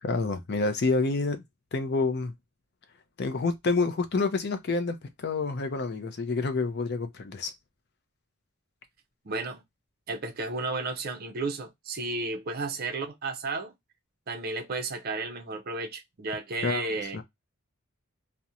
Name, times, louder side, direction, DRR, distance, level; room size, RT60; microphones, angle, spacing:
voice 1, 0.0-1.4 1.7-2.3 3.2-7.5 16.6-17.2, left 3 dB, 45° left, 0.5 m, -28 dB
voice 2, 9.2-9.6 10.1-13.7 14.3-17.2, right 3 dB, 40° right, 0.5 m, -33 dB
2.4 x 2.1 x 2.7 m
head